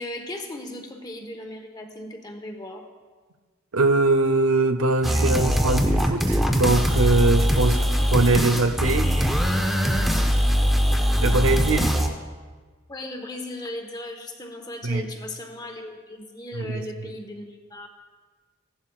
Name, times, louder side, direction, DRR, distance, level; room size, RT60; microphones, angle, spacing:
voice 1, 0.0-2.9 7.7-7.9 12.9-17.9, left 1 dB, 20° left, 4 dB, 1.0 m, -37 dB
voice 2, 3.7-7.7 8.1-9.3 11.2-11.9 14.8-15.1 16.5-16.9, right 2 dB, 80° right, 7 dB, 0.6 m, -22 dB
sound 1, 5.0-12.1, equal, ahead, 0.7 m, -21 dB
16.0 x 11.5 x 2.4 m, 1.4 s
head